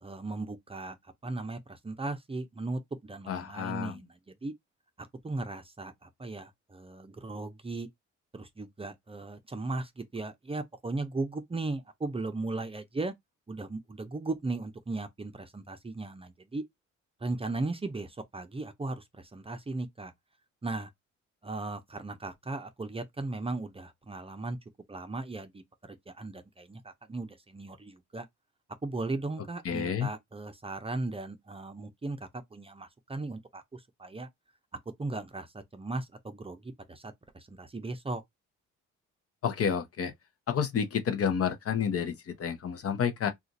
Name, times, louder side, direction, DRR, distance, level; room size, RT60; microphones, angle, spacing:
voice 1, 0.0-4.5 5.0-7.9 8.3-13.1 13.5-16.6 17.2-20.1 20.6-20.9 21.4-24.6 24.9-28.3 28.8-34.3 34.7-38.2, right 2 dB, 20° right, 0.6 m, -37 dB
voice 2, 3.3-3.9 29.6-30.1 39.4-40.1 40.5-43.3, left 7 dB, 50° left, 0.8 m, -30 dB
2.5 x 2.4 x 4.0 m
cardioid pair, 90°, 30 cm